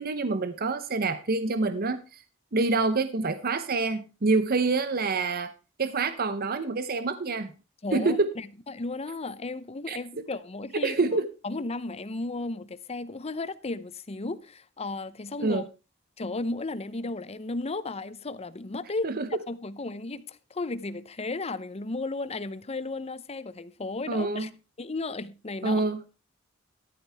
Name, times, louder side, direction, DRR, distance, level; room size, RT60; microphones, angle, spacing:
voice 1, 0.0-2.2 2.5-5.5 5.8-7.5 7.9-8.3 9.9-10.0 10.8-11.3 15.4-15.6 19.0-19.3 24.1-24.5 25.6-26.0, right 3 dB, 50° right, 0.8 m, -26 dB
voice 2, 7.8-11.0 11.4-15.6 16.2-19.1 19.5-24.5 24.8-25.9, left 3 dB, 30° left, 0.7 m, -34 dB
13.5 x 11.5 x 3.4 m
head